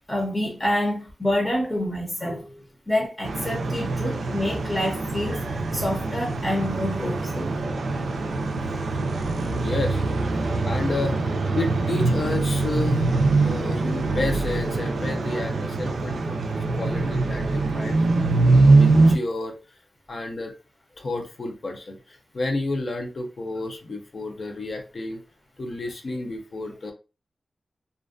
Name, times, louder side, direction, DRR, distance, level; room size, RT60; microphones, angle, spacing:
voice 1, 0.1-7.5, left 1 dB, 20° left, 0.7 m, -27 dB
sound 1, 3.2-19.2, right 3 dB, 85° right, 0.3 m, -23 dB
voice 2, 9.5-10.0 10.3-13.1 13.4-19.6 20.1-20.5 21.0-25.2 25.6-26.9, left 2 dB, 60° left, 0.6 m, -31 dB
2.5 x 2.2 x 2.4 m
cardioid pair, 60°, 0 cm